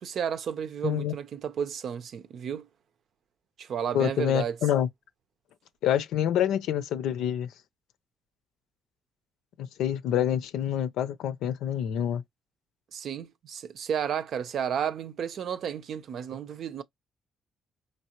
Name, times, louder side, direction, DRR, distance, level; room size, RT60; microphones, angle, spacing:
voice 1, 0.0-2.7 3.6-4.6 12.9-16.8, right 8 dB, 65° right, 0.6 m, -32 dB
voice 2, 0.8-1.1 3.9-4.9 5.8-7.5 9.6-12.2, left 10 dB, 85° left, 0.6 m, -27 dB
5.2 x 3.3 x 2.9 m
cardioid pair, 90°, 0 cm